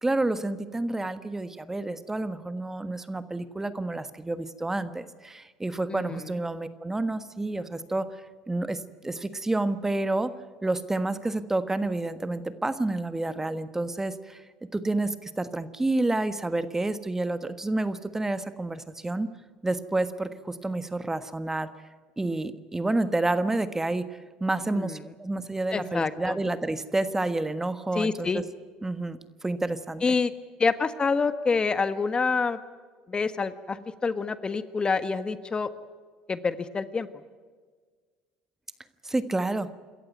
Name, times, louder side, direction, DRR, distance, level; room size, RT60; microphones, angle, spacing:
voice 1, 0.0-8.1 8.5-10.3 10.6-14.4 14.7-19.3 19.6-21.7 22.2-24.0 24.4-28.4 28.8-30.0 39.0-39.7, right 2 dB, 15° right, 12 dB, 1.4 m, -29 dB
voice 2, 5.9-6.2 24.7-25.0 25.7-26.4 27.9-28.5 30.0-30.3 30.6-32.6 33.1-35.7 36.3-37.1, left 4 dB, 30° left, 12 dB, 1.4 m, -27 dB
27.0 x 14.0 x 9.4 m, 1.5 s
hypercardioid pair, 75°, 3 cm